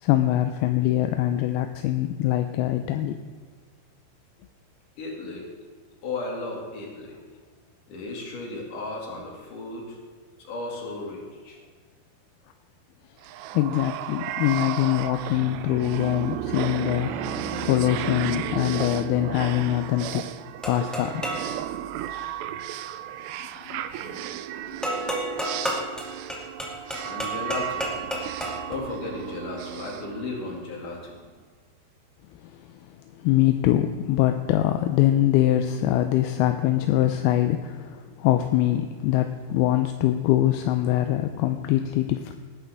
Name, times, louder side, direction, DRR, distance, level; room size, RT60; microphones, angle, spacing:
voice 1, 0.0-3.1 13.5-20.2 20.7-21.2 23.7-24.4 33.2-42.4, left 13 dB, 80° left, 7 dB, 2.4 m, -23 dB
voice 2, 5.0-5.5 6.0-7.2 7.9-10.0 10.4-11.6 27.0-27.9 28.7-31.2, left 3 dB, 55° left, -1 dB, 3.6 m, -35 dB
sound 1, 13.2-30.9, right 12 dB, 85° right, 2.7 m, -34 dB
sound 2, 20.6-21.5 24.8-28.8, equal, ahead, 0.9 m, -31 dB
19.0 x 11.0 x 3.5 m, 1.5 s
omnidirectional pair, 4.8 m